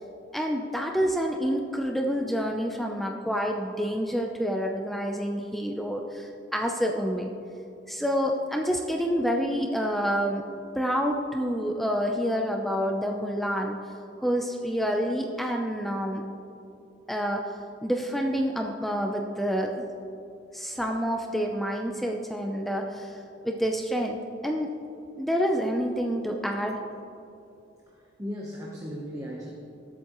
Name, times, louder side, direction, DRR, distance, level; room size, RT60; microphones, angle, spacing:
voice 1, 0.3-7.4 7.9-10.5 10.8-13.8 14.2-16.2 17.1-19.8 20.5-24.2 24.4-24.7 25.2-26.8, equal, ahead, 2 dB, 0.5 m, -28 dB
voice 2, 27.9-29.5, equal, 15° right, -2 dB, 1.0 m, -37 dB
19.0 x 8.2 x 3.1 m, 2.7 s
head